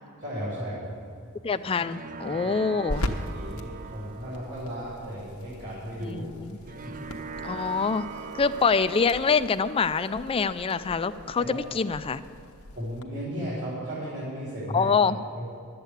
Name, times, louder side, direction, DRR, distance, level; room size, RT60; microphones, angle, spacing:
voice 1, 0.2-0.9 2.4-2.5 3.2-6.3 6.6-6.9 11.4-11.6 12.7-14.9 15.3-15.4, equal, 55° right, -8 dB, 3.5 m, -35 dB
sound 1, 0.8-13.0, left 1 dB, 90° left, 1.0 m, -40 dB
voice 2, 1.4-3.0 6.1-6.6 7.4-8.1 8.3-12.2 14.7-15.2, left 5 dB, 25° left, 12 dB, 0.4 m, -25 dB
sound 2, 1.5-12.4, right 4 dB, 40° right, 0.4 m, -43 dB
12.0 x 8.3 x 7.9 m, 2.4 s
head